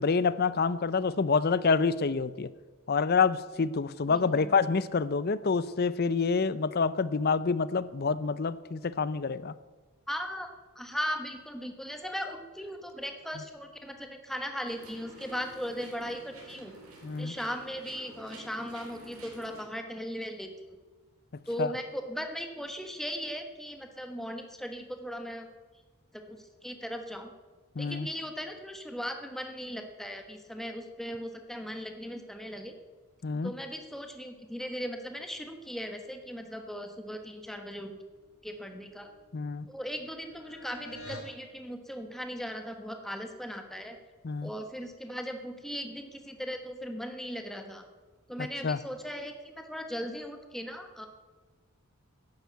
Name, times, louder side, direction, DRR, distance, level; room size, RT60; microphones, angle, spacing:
voice 1, 0.0-2.5 2.9-9.5 17.0-17.3 21.6-21.7 27.8-28.1 33.2-33.5 39.3-39.7 44.2-44.5 48.4-48.8, left 4 dB, 45° left, 16 dB, 0.6 m, -27 dB
voice 2, 4.1-4.6 10.1-10.5 10.7-16.7 17.2-20.5 21.5-25.5 26.1-27.3 27.8-32.7 33.4-38.0 38.4-39.1 39.7-44.0 44.4-47.8 48.3-51.1, equal, ahead, 5 dB, 1.3 m, -38 dB
sound 1, 14.6-19.6, right 1 dB, 85° right, 4.0 m, -50 dB
sound 2, 38.2-41.4, left 1 dB, 80° left, 4.3 m, -49 dB
11.0 x 10.0 x 8.2 m, 1.3 s
head